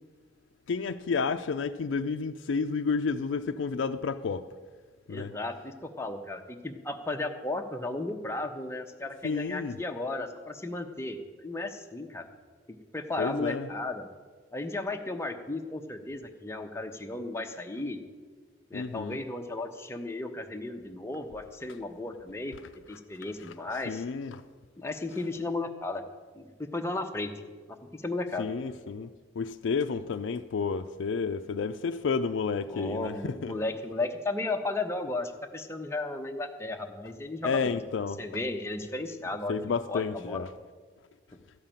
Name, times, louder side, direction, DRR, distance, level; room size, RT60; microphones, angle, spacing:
voice 1, 0.7-4.5 5.1-5.3 9.2-9.8 13.2-13.7 18.7-19.2 23.9-24.4 28.4-29.1 29.4-33.5 37.4-38.2 39.5-40.5, left 5 dB, 90° left, 0.4 m, -31 dB
voice 2, 5.1-12.3 12.7-14.1 14.5-18.0 18.7-22.6 22.9-24.0 24.8-26.0 26.3-27.3 27.7-28.5 32.7-37.8 38.2-40.4, left 2 dB, 15° left, 0.8 m, -35 dB
13.5 x 5.7 x 8.9 m
head